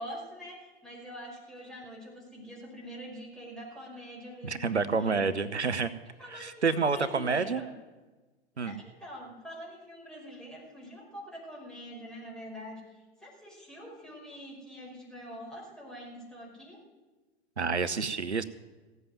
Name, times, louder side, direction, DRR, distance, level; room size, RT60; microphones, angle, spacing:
voice 1, 0.0-5.3 6.2-7.7 8.5-16.8, equal, ahead, -3 dB, 5.2 m, -44 dB
voice 2, 4.4-5.9 6.3-7.6 8.6-8.8 17.6-18.4, right 4 dB, 85° right, 13 dB, 0.7 m, -28 dB
16.0 x 8.1 x 9.3 m, 1.2 s
figure-of-eight pair, 95°, 33 cm